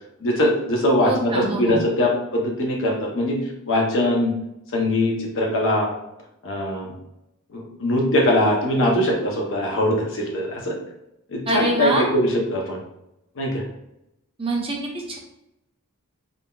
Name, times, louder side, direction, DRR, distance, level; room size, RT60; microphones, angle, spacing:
voice 1, 0.2-3.4 3.7-4.3 4.7-5.9 6.4-6.9 7.5-10.7 11.3-12.8 13.4-13.6, left 1 dB, 60° left, 0 dB, 0.7 m, -21 dB
voice 2, 1.0-1.8 11.5-12.1 14.4-15.2, right 2 dB, 25° right, -1 dB, 0.6 m, -24 dB
3.6 x 2.7 x 2.3 m, 0.85 s
head